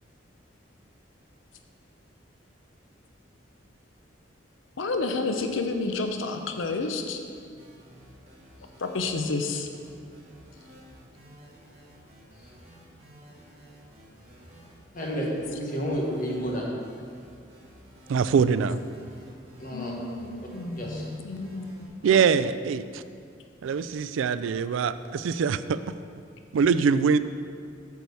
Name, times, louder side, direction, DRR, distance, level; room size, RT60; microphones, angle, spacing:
voice 1, 4.8-7.2 8.8-9.7 19.7-21.6, left 3 dB, 90° left, 5 dB, 0.7 m, -30 dB
sound 1, 7.2-21.9, equal, 35° right, 2.0 m, -52 dB
voice 2, 14.9-16.7 19.6-19.9 20.8-21.0, equal, 45° left, -2 dB, 1.5 m, -30 dB
voice 3, 18.1-18.8 22.0-23.0 23.6-25.8 26.5-27.2, right 6 dB, 85° right, 14 dB, 0.3 m, -23 dB
8.3 x 4.7 x 6.9 m, 2.2 s
head